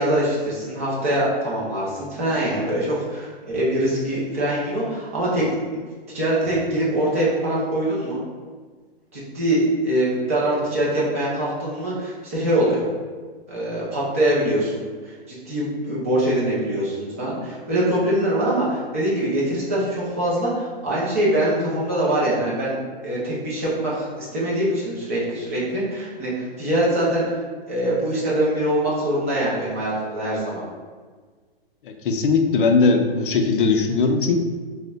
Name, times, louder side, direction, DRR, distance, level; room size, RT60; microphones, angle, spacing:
voice 1, 0.0-5.4 6.1-8.2 9.1-12.8 13.5-27.4 27.7-30.6, right 1 dB, 15° right, -7 dB, 0.3 m, -23 dB
voice 2, 32.0-34.4, left 4 dB, 60° left, 4 dB, 0.5 m, -19 dB
5.1 x 2.1 x 2.2 m, 1.5 s
hypercardioid pair, 165°, 30 cm